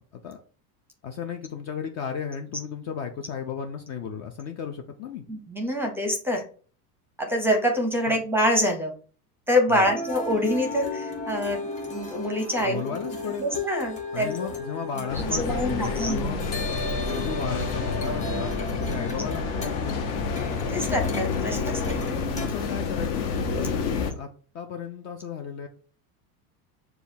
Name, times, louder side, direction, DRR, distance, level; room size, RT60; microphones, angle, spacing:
voice 1, 1.0-5.2 8.0-8.2 9.7-9.9 12.6-13.5 14.1-16.4 17.1-20.3 22.0-23.2 23.5-24.3 24.5-25.7, left 7 dB, 35° left, 4 dB, 0.4 m, -35 dB
voice 2, 5.3-6.4 7.2-8.9 9.5-13.0 13.4-14.3 14.9-16.4 20.5-22.0, equal, 5° right, 3 dB, 0.6 m, -26 dB
sound 1, 9.8-22.5, left 2 dB, 15° left, 1.1 m, -34 dB
sound 2, 15.1-24.1, left 5 dB, 60° left, 0.9 m, -29 dB
6.8 x 2.3 x 2.6 m, 0.41 s
supercardioid pair, 125°, 45 cm